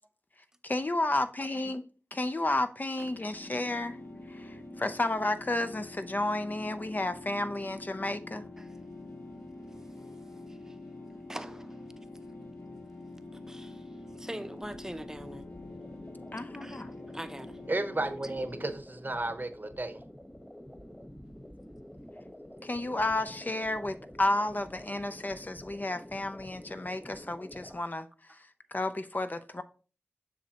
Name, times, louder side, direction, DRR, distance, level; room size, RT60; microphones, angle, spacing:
voice 1, 0.6-1.8 2.1-4.0 4.3-8.5 16.3-16.9 22.6-29.6, left 2 dB, 40° left, 0.5 m, -32 dB
sound 1, 3.0-18.8, left 2 dB, 65° left, 1.9 m, -46 dB
voice 2, 11.3-11.8 13.3-13.8 14.1-15.5 16.6-16.9 17.1-17.6, right 1 dB, 10° right, 0.6 m, -42 dB
sound 2, 14.6-27.7, equal, 5° left, 1.1 m, -49 dB
voice 3, 17.7-20.0, right 2 dB, 40° right, 0.8 m, -33 dB
7.3 x 6.1 x 2.9 m
wide cardioid pair, 45°, 5 cm